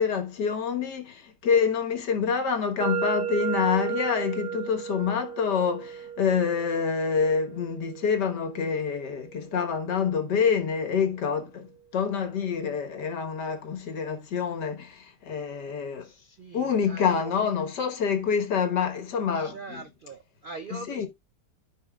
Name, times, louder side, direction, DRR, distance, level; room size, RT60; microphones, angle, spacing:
voice 1, 0.0-11.7 11.9-16.1 16.5-19.8 20.7-21.1, left 6 dB, 90° left, 2.0 m, -27 dB
sound 1, 2.8-10.7, right 8 dB, 50° right, 2.4 m, -35 dB
voice 2, 16.0-17.3 19.3-21.1, right 3 dB, 65° right, 0.5 m, -42 dB
13.5 x 5.8 x 2.3 m
omnidirectional pair, 1.8 m